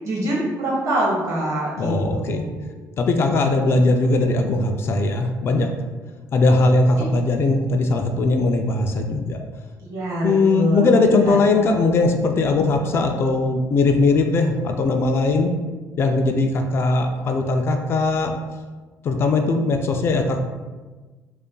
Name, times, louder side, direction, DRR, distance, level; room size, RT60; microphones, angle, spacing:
voice 1, 0.0-2.6 7.0-7.1 9.8-10.9 11.2-11.4, right 1 dB, 55° right, -4 dB, 1.4 m, -25 dB
voice 2, 1.8-2.4 3.0-5.7 6.3-9.4 10.2-15.5 16.0-18.3 19.0-20.4, left 3 dB, 40° left, 4 dB, 0.3 m, -19 dB
5.1 x 2.5 x 2.2 m, 1.3 s
cardioid pair, 135°, 6 cm